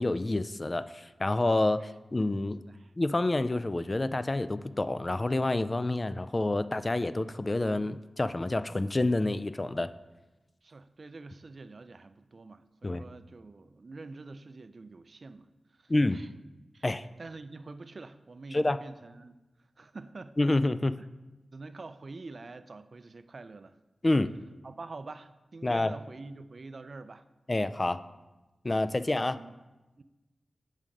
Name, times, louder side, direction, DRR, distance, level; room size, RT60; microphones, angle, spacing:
voice 1, 0.0-2.6 3.0-9.9 12.8-13.0 15.9-16.2 16.8-17.0 18.5-18.8 20.4-21.0 24.0-24.3 25.6-25.9 27.5-28.0 28.6-29.4, left 2 dB, 35° left, 13 dB, 0.3 m, -28 dB
voice 2, 2.4-2.9 10.6-16.3 16.7-16.8 17.2-19.4 19.8-20.4 21.0-21.1 21.5-23.7 24.6-27.2 29.0-29.5 30.0-30.1, right 3 dB, 55° right, 12 dB, 0.4 m, -46 dB
7.4 x 4.9 x 5.2 m, 1.1 s
cardioid pair, 45°, 0 cm